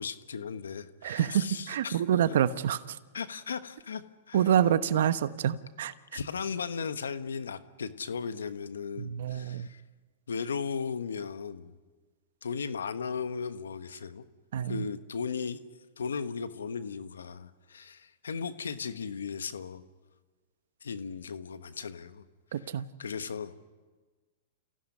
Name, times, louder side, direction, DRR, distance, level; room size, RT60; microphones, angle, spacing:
voice 1, 0.0-2.0 2.3-2.4 3.1-4.5 6.1-9.8 10.3-11.7 12.4-14.2 14.7-15.6 16.0-19.8 20.8-22.2 22.6-22.7 23.0-23.6, left 6 dB, 90° left, 11 dB, 1.3 m, -36 dB
voice 2, 1.0-3.0 4.3-5.9 9.0-9.7 14.5-14.8 22.5-22.8, right 10 dB, 70° right, 13 dB, 1.0 m, -27 dB
29.0 x 16.0 x 9.9 m, 1.4 s
hypercardioid pair, 120°, 0 cm